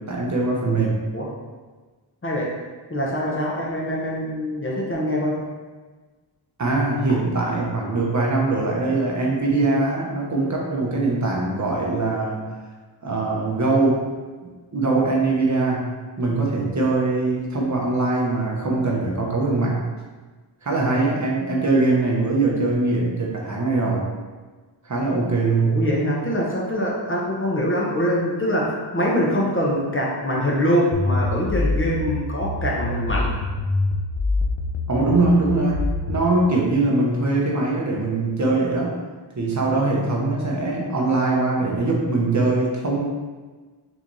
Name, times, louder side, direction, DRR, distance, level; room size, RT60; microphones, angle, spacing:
voice 1, 0.1-1.0 6.6-12.4 13.0-14.0 14.7-15.9 16.2-19.8 20.6-24.1 24.8-25.8 34.9-38.9 39.4-43.1, right 2 dB, 40° right, -2 dB, 0.8 m, -22 dB
voice 2, 2.2-2.6 2.9-5.4 25.7-33.3, equal, 25° left, -4 dB, 0.8 m, -24 dB
sound 1, 30.9-36.3, left 2 dB, 80° left, 0.6 m, -25 dB
6.0 x 3.3 x 2.6 m, 1.3 s
wide cardioid pair, 150°, 46 cm